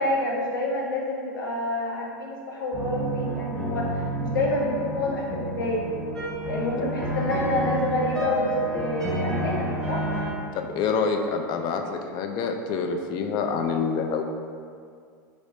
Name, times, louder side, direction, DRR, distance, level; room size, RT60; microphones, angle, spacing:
voice 1, 0.0-5.8 6.5-10.1, left 2 dB, 85° left, -2 dB, 0.7 m, -28 dB
sound 1, 2.7-10.3, right 1 dB, 5° left, 1.3 m, -29 dB
voice 2, 10.5-14.2, left 5 dB, 45° left, 4 dB, 0.3 m, -27 dB
4.9 x 2.0 x 2.6 m, 2.2 s
hypercardioid pair, 100°, 11 cm